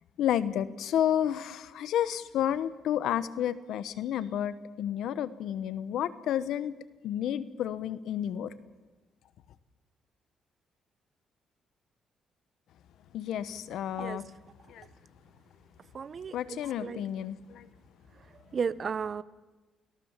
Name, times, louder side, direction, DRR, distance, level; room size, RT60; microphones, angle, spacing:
voice 1, 0.2-6.7 7.0-8.5 13.1-14.2 14.7-14.9 16.3-17.7, left 10 dB, 80° left, 15 dB, 1.1 m, -31 dB
voice 2, 15.9-17.0 18.5-19.2, right 6 dB, 45° right, 18 dB, 0.8 m, -34 dB
29.5 x 18.0 x 7.4 m, 1.3 s
cardioid pair, 90°, 0 cm